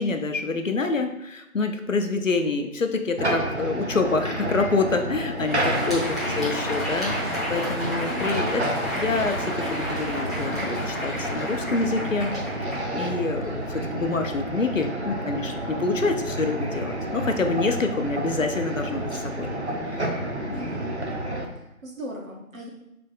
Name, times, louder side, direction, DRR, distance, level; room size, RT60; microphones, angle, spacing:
voice 1, 0.0-6.0 6.4-8.6 8.9-12.3 12.7-19.5 19.9-20.0 20.5-20.7, left 3 dB, 65° left, 5 dB, 0.6 m, -27 dB
sound 1, 3.2-21.4, right 1 dB, 50° right, 0.6 m, -30 dB
Crowd, 5.4-13.7, left 1 dB, ahead, 0.6 m, -32 dB
voice 2, 5.7-6.4 20.6-21.0 21.5-22.7, equal, 65° right, -2 dB, 1.5 m, -40 dB
4.1 x 3.4 x 3.8 m, 0.88 s
figure-of-eight pair, 165°, 43 cm